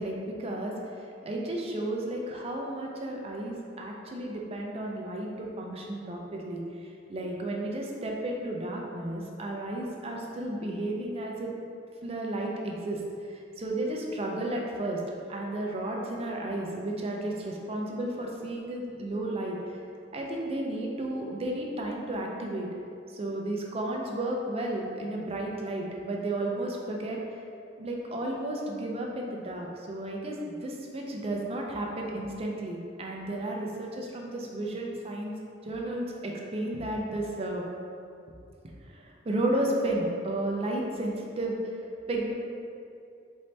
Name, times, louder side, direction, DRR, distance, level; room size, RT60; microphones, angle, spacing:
voice 1, 0.0-6.6 7.1-11.5 12.0-13.0 13.3-15.0 15.3-19.6 20.1-22.7 23.1-27.2 27.8-35.3 35.6-37.6 38.9-41.8 42.1-42.3, right 1 dB, 30° right, -1 dB, 0.4 m, -33 dB
4.1 x 2.7 x 3.2 m, 2.5 s
head